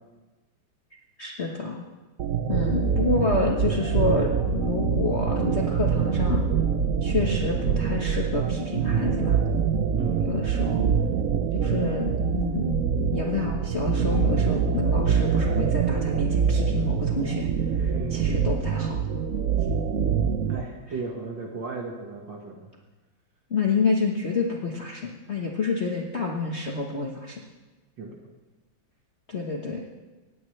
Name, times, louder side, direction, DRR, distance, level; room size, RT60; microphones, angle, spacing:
voice 1, 1.2-1.8 2.5-6.4 7.0-9.4 10.2-10.9 11.5-12.8 13.1-17.5 17.8-19.0 23.5-27.4 29.3-29.8, left 4 dB, 40° left, -1 dB, 1.3 m, -28 dB
sound 1, 2.2-20.6, right 6 dB, 85° right, 0.7 m, -25 dB
voice 2, 10.0-10.3 17.9-18.2 20.5-22.7 28.0-28.2, right 4 dB, 65° right, 0 dB, 2.2 m, -35 dB
19.0 x 15.5 x 3.3 m, 1.2 s
omnidirectional pair, 2.2 m